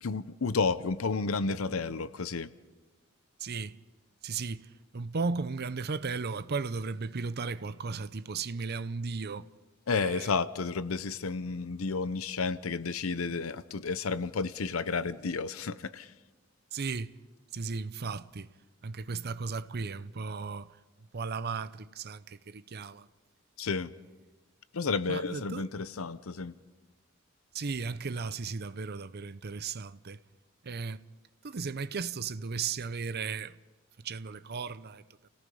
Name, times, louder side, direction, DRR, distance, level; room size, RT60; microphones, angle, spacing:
voice 1, 0.0-2.5 9.9-16.1 23.6-23.9 24.7-26.5, left 4 dB, 75° left, 0.7 m, -31 dB
voice 2, 3.4-3.8 4.2-4.7 4.9-9.5 9.9-10.3 16.7-17.2 17.5-18.5 18.8-20.7 21.1-23.1 25.1-25.7 27.5-30.2 30.6-31.0 31.4-33.6 34.0-35.0, right 4 dB, 50° right, 0.6 m, -35 dB
29.5 x 18.0 x 5.4 m
head